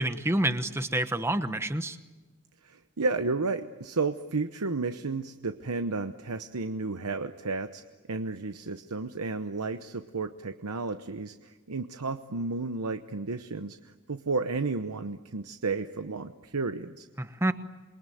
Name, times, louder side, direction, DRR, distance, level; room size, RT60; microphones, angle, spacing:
voice 1, 0.0-2.0 17.2-17.5, right 1 dB, 10° right, 10 dB, 1.0 m, -28 dB
voice 2, 2.6-7.8 8.1-17.1, right 3 dB, 90° right, 9 dB, 0.9 m, -32 dB
27.5 x 23.0 x 9.2 m, 1.2 s
head